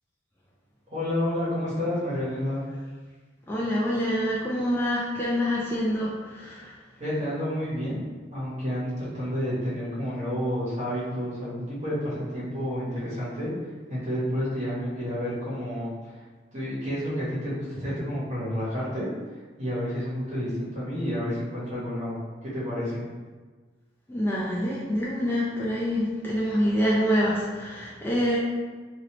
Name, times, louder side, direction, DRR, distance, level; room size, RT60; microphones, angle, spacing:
voice 1, 0.9-2.6 7.0-8.0 8.3-13.5 13.9-16.1 16.5-19.1 19.6-23.0, equal, 40° right, -9 dB, 1.3 m, -30 dB
voice 2, 3.5-6.7 24.1-28.4, equal, 10° left, -6 dB, 0.4 m, -26 dB
3.1 x 2.6 x 3.0 m, 1.4 s
head